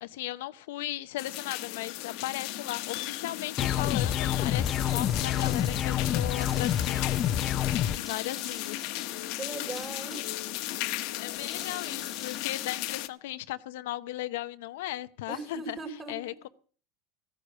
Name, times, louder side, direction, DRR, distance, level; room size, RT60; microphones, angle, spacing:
voice 1, 0.0-7.4 7.9-8.9 11.2-15.8 16.1-16.5, left 15 dB, 75° left, 0.7 m, -37 dB
sound 1, 1.2-13.1, left 16 dB, 60° left, 1.1 m, -36 dB
sound 2, 3.6-8.0, left 10 dB, 35° left, 0.7 m, -28 dB
sound 3, 4.6-5.9 6.4-7.6 8.1-9.3 9.7-10.7 11.3-12.7, left 1 dB, ahead, 1.1 m, -49 dB
voice 2, 9.4-10.2 15.3-16.4, right 3 dB, 25° right, 4.1 m, -39 dB
16.0 x 9.9 x 6.4 m
supercardioid pair, 120°, 0 cm